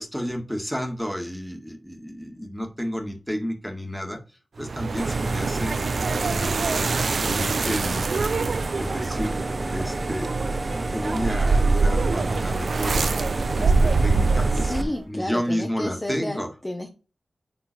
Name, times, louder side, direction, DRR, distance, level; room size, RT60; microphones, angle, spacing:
voice 1, 0.0-4.2 4.6-5.8 6.2-8.1 8.7-9.4 9.7-10.4 10.7-13.3 13.6-16.5, equal, ahead, 3 dB, 1.9 m, -31 dB
sound 1, 4.6-15.0, right 4 dB, 70° right, 0.6 m, -24 dB
sound 2, 5.0-14.8, right 2 dB, 30° right, 0.9 m, -31 dB
voice 2, 14.5-16.9, left 1 dB, 20° left, 2 dB, 1.1 m, -32 dB
9.5 x 3.8 x 4.3 m, 0.33 s
wide cardioid pair, 85°, 0 cm